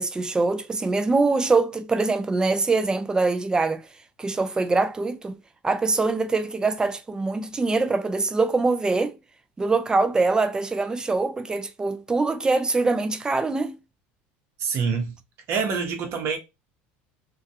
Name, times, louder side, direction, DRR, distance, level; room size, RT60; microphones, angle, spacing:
voice 1, 0.0-3.8 4.2-5.4 5.6-9.2 9.6-13.7, right 3 dB, 15° right, 0.3 m, -23 dB
voice 2, 14.6-15.2 15.5-16.4, right 5 dB, 50° right, 0.9 m, -26 dB
2.3 x 2.2 x 2.7 m
supercardioid pair, 115°, 5 cm